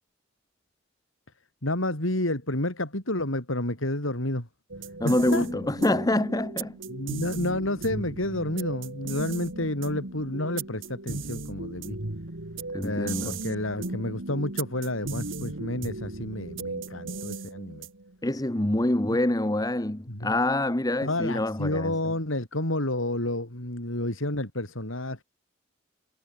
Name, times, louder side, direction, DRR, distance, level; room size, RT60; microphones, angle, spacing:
voice 1, 1.6-4.5 5.0-5.5 6.9-12.0 12.8-17.9 19.1-19.2 20.1-20.4 21.0-25.2, left 1 dB, 85° left, 5.9 m, -30 dB
sound 1, 4.7-18.2, right 3 dB, 75° right, 2.5 m, -36 dB
voice 2, 5.0-6.8 12.7-13.3 18.2-21.9, left 1 dB, 20° left, 1.1 m, -26 dB
head